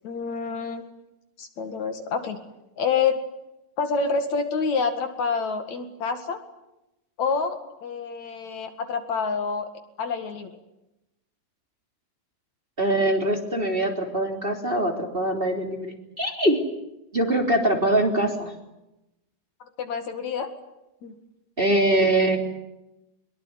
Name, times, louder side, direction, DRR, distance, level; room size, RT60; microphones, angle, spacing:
voice 1, 0.0-0.9 1.4-2.4 2.8-3.2 3.8-6.4 7.2-9.7 10.0-10.6 19.8-20.5 21.0-21.2, left 5 dB, 60° left, 8 dB, 3.2 m, -27 dB
voice 2, 12.8-16.6 17.1-18.5 21.6-22.4, right 1 dB, 15° right, 3 dB, 3.5 m, -23 dB
23.5 x 22.5 x 9.7 m, 0.92 s
omnidirectional pair, 3.7 m